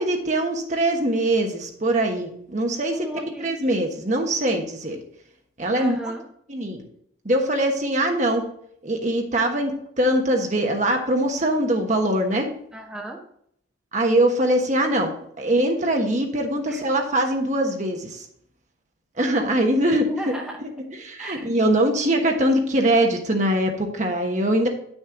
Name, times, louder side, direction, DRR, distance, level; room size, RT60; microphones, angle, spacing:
voice 1, 0.0-3.1 3.4-5.0 5.6-6.0 6.5-6.8 7.2-8.4 8.8-12.5 13.9-18.3 19.2-20.1 20.6-20.7 21.0-24.7, right 1 dB, 40° right, 3 dB, 1.2 m, -22 dB
voice 2, 2.9-3.6 5.7-6.2 12.7-13.2 16.7-16.8 19.9-20.6 21.2-21.5, right 1 dB, 5° right, -1 dB, 0.9 m, -35 dB
9.4 x 6.3 x 3.8 m, 0.69 s
head